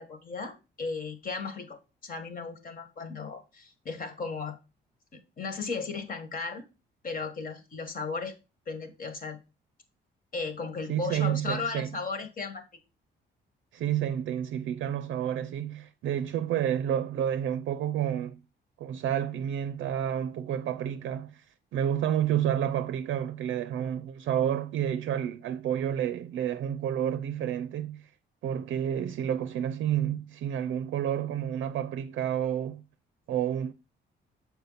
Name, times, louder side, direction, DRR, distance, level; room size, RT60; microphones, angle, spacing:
voice 1, 0.0-4.6 5.4-6.6 7.0-8.3 8.7-9.4 10.3-12.6, left 4 dB, 45° left, 1.6 m, -35 dB
voice 2, 10.9-11.9 13.7-18.4 18.8-21.4 21.7-28.1 28.4-32.8 33.3-33.7, right 10 dB, 75° right, 0.5 m, -30 dB
6.8 x 4.5 x 4.0 m
cardioid pair, 90°, 20 cm